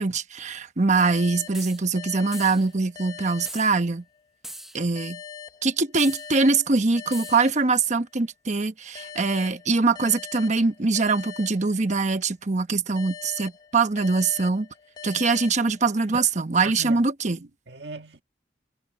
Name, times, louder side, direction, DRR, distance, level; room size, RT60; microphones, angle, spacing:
voice 1, 0.0-4.0 4.7-5.2 5.6-14.7 15.0-17.4, right 3 dB, 40° right, 1.1 m, -23 dB
sound 1, 0.9-4.3 5.0-8.3 8.9-12.3 13.0-16.3, left 7 dB, 25° left, 1.4 m, -43 dB
sound 2, 1.5-1.8 2.3-2.7 3.5-3.7 4.4-4.8 6.0-6.3 7.1-7.5, right 1 dB, ahead, 1.2 m, -40 dB
voice 2, 16.1-18.2, right 3 dB, 70° right, 1.7 m, -40 dB
head